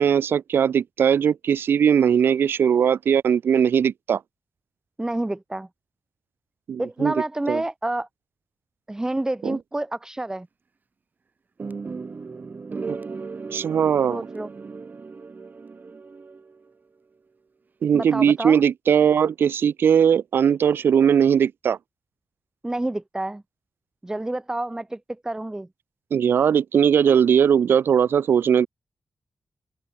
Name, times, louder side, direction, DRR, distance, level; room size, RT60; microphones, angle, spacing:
voice 1, 0.0-4.2 6.7-7.1 7.5-7.6 9.4-9.6 12.9-13.0 13.5-14.2 17.8-21.8 26.1-28.7, right 8 dB, 80° right, 1.4 m, -19 dB
voice 2, 5.0-5.7 6.8-8.1 8.9-10.5 14.1-14.5 17.9-18.6 22.6-23.4 24.0-25.7, right 1 dB, 15° right, 0.7 m, -28 dB
sound 1, 11.6-16.7, right 4 dB, 50° right, 3.3 m, -36 dB
cardioid pair, 55°, 4 cm